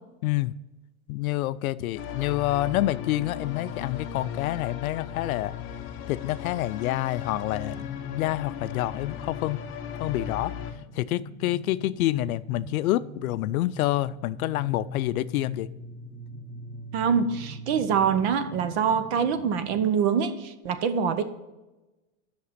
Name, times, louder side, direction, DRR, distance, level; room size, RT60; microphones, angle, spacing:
voice 1, 0.2-0.5 1.1-5.5 6.1-9.6 10.0-15.7, left 15 dB, 75° left, 0.5 m, -28 dB
sound 1, 1.9-10.7, left 8 dB, 30° left, 1.0 m, -37 dB
sound 2, 9.9-19.9, equal, 5° left, 1.1 m, -45 dB
voice 2, 16.9-21.2, right 7 dB, 50° right, 0.9 m, -25 dB
8.4 x 6.1 x 5.8 m
supercardioid pair, 145°, 43 cm